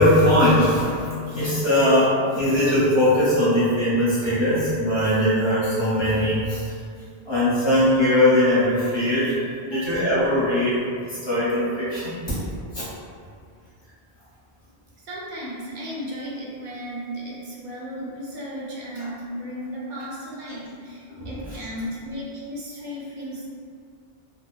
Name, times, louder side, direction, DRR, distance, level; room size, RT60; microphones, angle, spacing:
voice 1, 0.0-6.7 7.2-10.8 11.1-12.3 12.7-12.8 21.2-21.4, left 1 dB, 25° left, -12 dB, 1.0 m, -20 dB
voice 2, 15.0-23.4, equal, 55° right, -6 dB, 0.6 m, -35 dB
2.5 x 2.1 x 2.3 m, 2.2 s
omnidirectional pair, 1.1 m